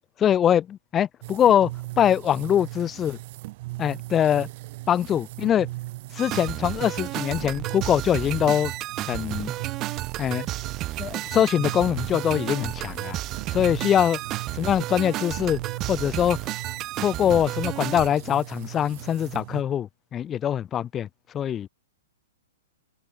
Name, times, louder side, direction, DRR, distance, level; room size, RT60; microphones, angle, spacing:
voice 1, 0.2-1.7 2.0-3.2 3.8-4.5 4.9-5.7 6.1-8.7 9.1-9.5 10.2-10.5 11.0-13.2 13.5-14.2 14.6-15.6 15.9-16.4 17.0-21.1 21.3-21.7, left 9 dB, 20° left, 0.5 m, -23 dB
sound 1, 1.2-19.6, right 20 dB, 50° right, 2.2 m, -38 dB
sound 2, 6.2-18.1, right 15 dB, 30° right, 0.5 m, -32 dB
hypercardioid pair, 130°, 0 cm